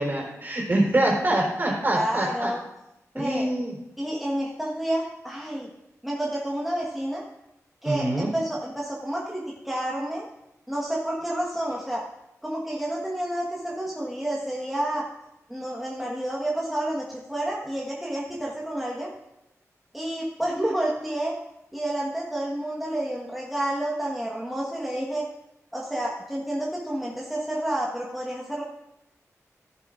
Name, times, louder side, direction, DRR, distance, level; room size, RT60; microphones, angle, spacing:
voice 1, 0.0-2.5 3.2-3.7 7.8-8.3, right 1 dB, 40° right, -1 dB, 3.8 m, -24 dB
voice 2, 1.9-2.6 3.1-3.5 4.0-5.7 6.0-7.2 7.8-10.3 10.7-12.0 12.4-15.1 15.5-19.1 19.9-21.4 21.7-25.3 25.7-28.6, right 1 dB, ahead, -4 dB, 1.4 m, -29 dB
15.0 x 11.0 x 2.5 m, 0.90 s
wide cardioid pair, 105°, 6 cm